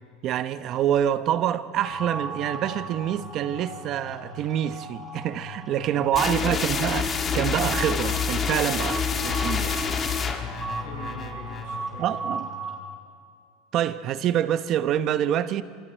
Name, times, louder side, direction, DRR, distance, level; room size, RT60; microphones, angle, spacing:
voice 1, 0.2-9.9 12.0-12.5 13.7-15.6, right 10 dB, 45° right, 0.9 m, -26 dB
sound 1, 1.8-12.8, right 2 dB, 15° right, 5.8 m, -37 dB
voice 2, 5.8-6.8 8.8-9.4 10.0-10.2 10.6-12.3, left 3 dB, 80° left, 5.9 m, -42 dB
sound 2, 6.1-11.8, left 6 dB, 25° left, 1.8 m, -27 dB
26.5 x 26.0 x 4.5 m
supercardioid pair, 130°, 0 cm